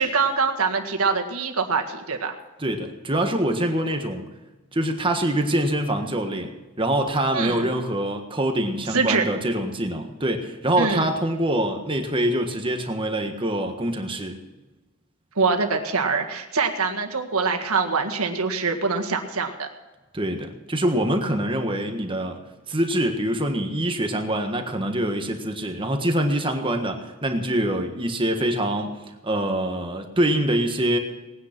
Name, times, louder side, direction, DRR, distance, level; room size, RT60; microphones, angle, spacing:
voice 1, 0.0-2.4 7.3-7.6 8.9-9.2 10.8-11.1 15.4-19.7, right 4 dB, 85° right, 4 dB, 1.8 m, -24 dB
voice 2, 2.6-4.2 4.7-14.4 20.1-22.4 22.7-31.0, right 1 dB, 25° right, 5 dB, 1.5 m, -25 dB
19.5 x 9.6 x 6.0 m, 1.2 s
head